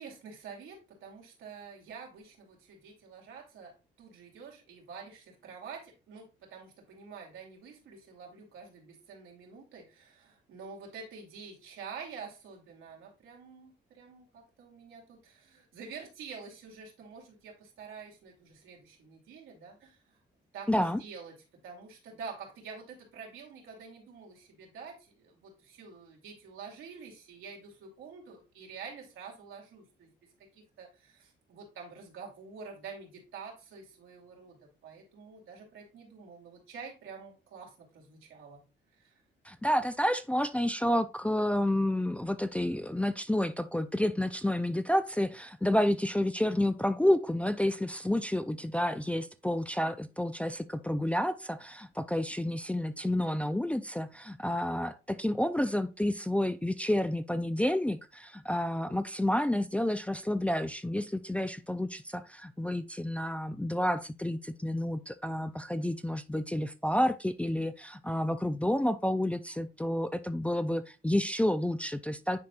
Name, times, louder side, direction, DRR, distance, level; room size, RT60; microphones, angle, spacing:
voice 1, 0.0-20.2 20.5-30.1 30.5-38.6 38.9-39.2, right 5 dB, 85° right, 2.5 m, -47 dB
voice 2, 20.7-21.0 39.5-72.5, left 1 dB, 5° left, 0.4 m, -30 dB
9.6 x 4.3 x 2.4 m
cardioid pair, 90°, 20 cm